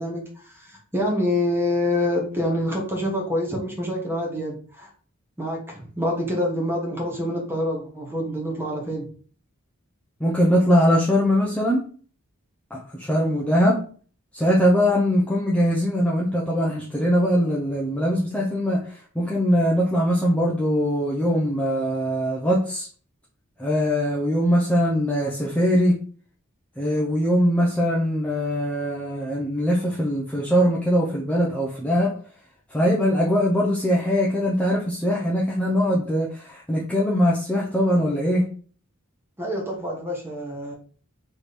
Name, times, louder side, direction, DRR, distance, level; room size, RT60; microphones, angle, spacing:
voice 1, 0.0-4.9 5.4-9.1 39.4-40.7, left 1 dB, 10° right, -1 dB, 1.2 m, -26 dB
voice 2, 10.2-11.8 12.7-13.8 14.3-22.9 23.6-25.9 26.8-32.1 32.7-38.4, equal, 5° left, -5 dB, 0.6 m, -21 dB
3.4 x 3.2 x 4.1 m, 0.43 s
head